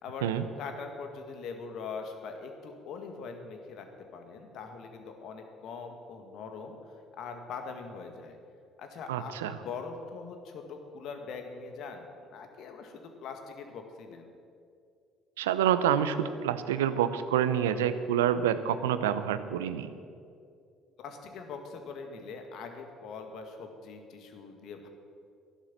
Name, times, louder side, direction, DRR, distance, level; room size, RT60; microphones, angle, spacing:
voice 1, 0.6-3.9 4.1-6.8 7.1-8.4 8.8-14.3 21.0-24.9, left 5 dB, 60° left, 5 dB, 1.9 m, -42 dB
voice 2, 9.1-9.5 15.4-19.9, right 9 dB, 80° right, 12 dB, 0.7 m, -27 dB
13.0 x 11.5 x 7.5 m, 2.4 s
hypercardioid pair, 55°, 0 cm